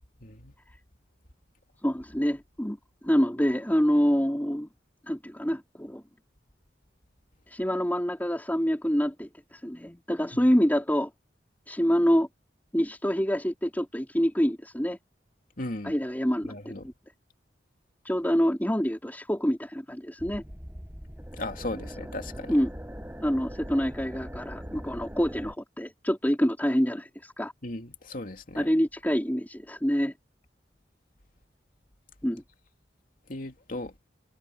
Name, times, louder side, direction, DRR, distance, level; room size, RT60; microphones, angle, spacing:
voice 1, 0.2-0.5 10.3-10.4 15.6-15.9 16.4-16.9 21.3-22.6 27.6-28.7 33.3-33.9, left 2 dB, 50° left, 2.7 m, -37 dB
voice 2, 1.8-2.8 3.0-4.7 5.1-6.0 7.5-11.1 11.7-12.3 12.7-15.0 15.8-16.9 18.0-20.4 22.5-22.7 23.2-27.5 28.5-30.1 32.2-32.4, equal, 10° left, 4.9 m, -26 dB
sound 1, 20.2-25.5, equal, 10° right, 7.5 m, -41 dB
head